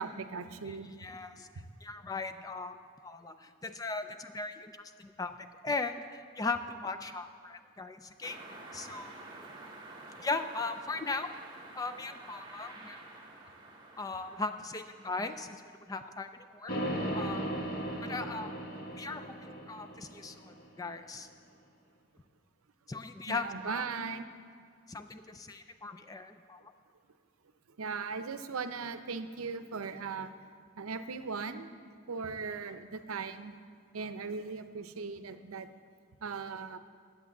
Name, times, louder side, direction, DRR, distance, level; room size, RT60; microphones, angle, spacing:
voice 1, 0.0-0.9 23.3-24.3 27.8-30.3 30.8-31.7 32.1-33.6 33.9-35.7 36.2-36.8, right 5 dB, 85° right, 10 dB, 0.6 m, -38 dB
voice 2, 0.7-1.5 1.8-4.7 5.0-5.3 5.6-8.4 8.7-9.5 10.2-11.3 11.7-13.2 14.0-15.6 15.9-16.7 17.1-17.6 18.0-18.5 18.9-21.3 22.9-23.9 24.9-26.7, left 3 dB, 15° left, 8 dB, 0.3 m, -38 dB
sound 1, 8.2-15.8, right 2 dB, 20° right, 1.0 m, -50 dB
sound 2, 16.7-20.8, right 1 dB, 45° left, 1.4 m, -37 dB
11.0 x 8.0 x 7.1 m, 2.1 s
head